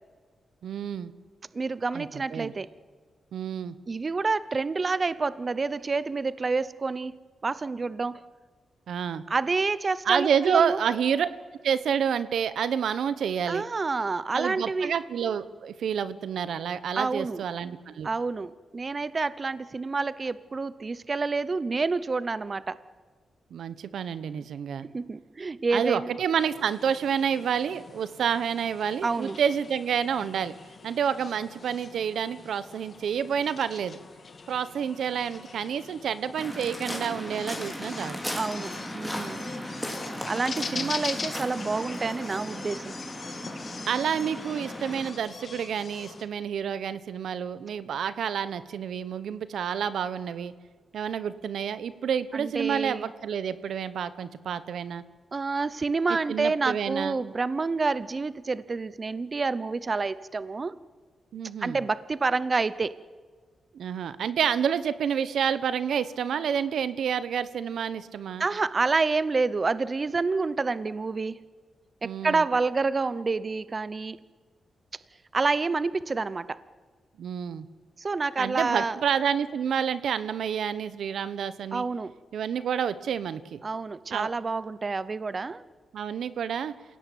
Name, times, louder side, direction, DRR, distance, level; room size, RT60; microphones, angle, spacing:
voice 1, 0.6-1.1 1.9-2.5 3.3-3.7 8.9-9.2 10.0-11.3 11.6-13.6 14.3-18.1 23.5-24.9 25.7-30.5 30.8-34.0 34.5-38.2 40.6-41.0 43.9-50.5 50.9-55.0 56.3-57.2 61.3-61.8 63.7-68.4 72.0-72.4 77.2-77.7 78.4-81.8 82.3-83.6 84.1-84.3 85.9-86.7, right 8 dB, 90° right, 15 dB, 1.2 m, -29 dB
voice 2, 1.5-2.7 3.9-7.2 7.4-8.2 9.3-10.8 13.5-14.9 16.9-17.4 18.0-22.8 24.8-26.1 29.0-29.4 38.3-39.5 40.3-42.9 52.3-53.1 55.3-60.7 61.6-63.0 68.4-71.4 72.0-74.2 75.3-76.6 78.0-79.0 81.7-82.1 83.6-85.6, right 4 dB, 35° right, 17 dB, 0.7 m, -28 dB
sound 1, 26.4-46.2, left 4 dB, 45° left, 2.4 m, -42 dB
Waves surf, 36.4-45.1, equal, ahead, 4.2 m, -37 dB
27.5 x 17.0 x 9.3 m, 1.5 s
wide cardioid pair, 125°, 0 cm